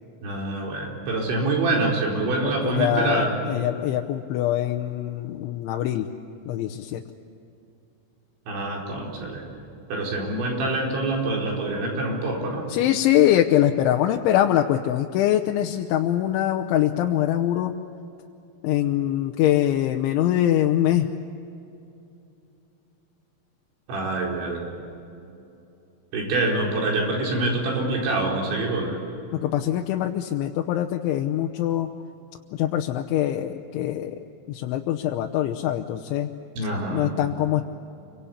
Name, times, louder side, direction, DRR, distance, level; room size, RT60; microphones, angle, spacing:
voice 1, 0.2-3.3 8.5-9.4 9.9-12.7 23.9-24.7 26.1-29.0 36.6-37.1, right 2 dB, 70° right, -1 dB, 6.8 m, -25 dB
voice 2, 2.4-6.1 6.5-7.0 12.7-17.7 18.6-21.1 29.3-31.9 32.5-34.2 34.5-36.3 36.9-37.6, left 12 dB, 85° left, 3 dB, 3.3 m, -23 dB
28.5 x 24.5 x 8.6 m, 2.7 s
omnidirectional pair, 5.4 m